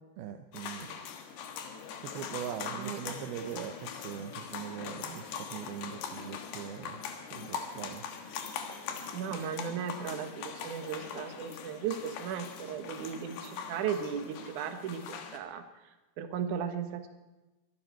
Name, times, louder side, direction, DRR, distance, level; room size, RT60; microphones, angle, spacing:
voice 1, 0.2-0.9 2.0-7.0 7.3-8.1, right 9 dB, 85° right, 7 dB, 2.2 m, -41 dB
sound 1, 0.5-15.4, left 6 dB, 65° left, 3.1 m, -42 dB
voice 2, 2.8-3.2 9.1-15.6 16.2-17.1, right 8 dB, 65° right, 7 dB, 2.0 m, -36 dB
24.0 x 12.5 x 4.5 m, 1.1 s
omnidirectional pair, 5.4 m